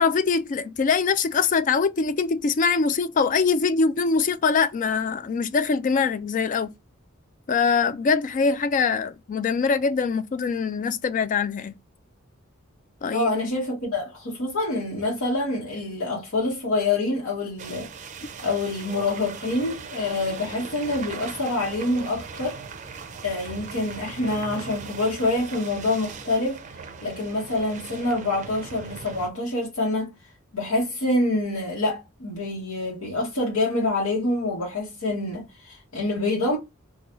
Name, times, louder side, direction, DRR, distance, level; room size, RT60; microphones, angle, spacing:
voice 1, 0.0-6.7 7.5-11.8 13.0-13.3, left 5 dB, 40° left, 0.3 m, -23 dB
voice 2, 13.1-17.9 18.4-22.6 23.2-26.6 27.0-30.1 30.5-36.6, left 2 dB, 80° left, 1.1 m, -26 dB
sound 1, 17.6-29.3, right 5 dB, 35° right, 0.5 m, -39 dB
3.8 x 2.3 x 3.0 m
head